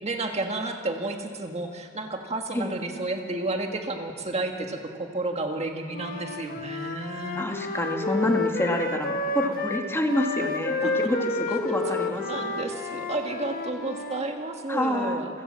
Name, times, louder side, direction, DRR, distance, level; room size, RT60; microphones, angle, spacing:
voice 1, 0.0-7.5 10.8-10.9 11.9-15.3, right 2 dB, 30° right, 3 dB, 1.6 m, -31 dB
Wind instrument woodwind instrument, 5.9-14.2, left 3 dB, 45° left, 1.6 m, -30 dB
voice 2, 7.3-12.5 14.7-15.2, left 1 dB, 10° left, 2 dB, 2.0 m, -27 dB
27.5 x 16.5 x 7.5 m, 2.2 s
head